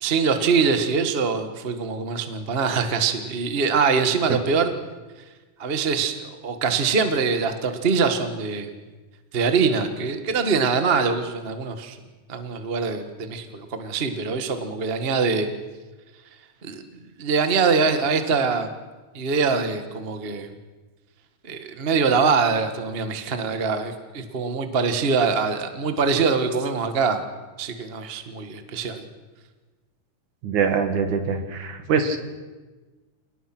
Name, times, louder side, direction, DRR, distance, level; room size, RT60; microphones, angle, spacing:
voice 1, 0.0-4.7 5.6-8.7 9.3-12.0 12.3-15.5 16.6-16.8 17.2-18.7 19.1-20.5 21.4-27.2 27.6-29.0, right 5 dB, 40° right, 7 dB, 0.8 m, -23 dB
voice 2, 30.4-32.2, right 5 dB, 65° right, 7 dB, 3.2 m, -23 dB
29.0 x 19.0 x 6.0 m, 1.3 s
omnidirectional pair, 3.8 m